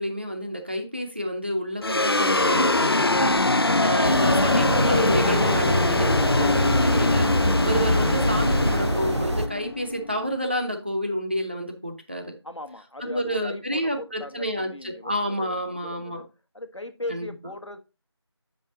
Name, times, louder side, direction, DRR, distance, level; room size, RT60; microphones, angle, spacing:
voice 1, 0.0-12.3 13.0-16.2 17.1-17.3, equal, 25° right, 0.7 m, -29 dB
sound 1, 1.8-10.4, left 2 dB, 55° left, 0.5 m, -22 dB
sound 2, 4.0-9.5, right 1 dB, 75° right, 0.9 m, -27 dB
voice 2, 12.4-16.3 16.5-17.8, left 1 dB, 85° left, 1.4 m, -39 dB
7.8 x 5.4 x 3.9 m
figure-of-eight pair, 170°, 15 cm